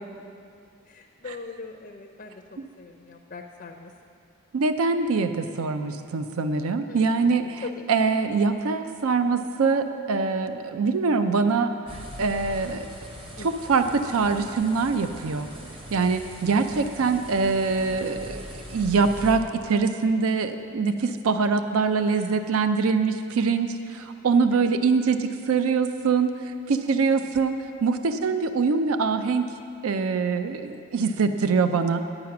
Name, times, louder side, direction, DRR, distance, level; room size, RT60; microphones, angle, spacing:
voice 1, 0.8-2.4 2.8-3.9 6.9-7.8 13.4-13.7 16.5-16.8 22.1-22.4 24.5-24.8 26.9-27.1, left 4 dB, 40° left, 3 dB, 0.5 m, -42 dB
voice 2, 4.5-7.6 7.9-11.7 12.2-12.9 13.4-15.5 15.9-18.4 18.7-29.5 29.8-32.0, right 4 dB, 70° right, 9 dB, 0.4 m, -24 dB
sound 1, 11.9-19.4, equal, 25° right, 0.8 m, -41 dB
9.4 x 8.8 x 5.8 m, 2.5 s
head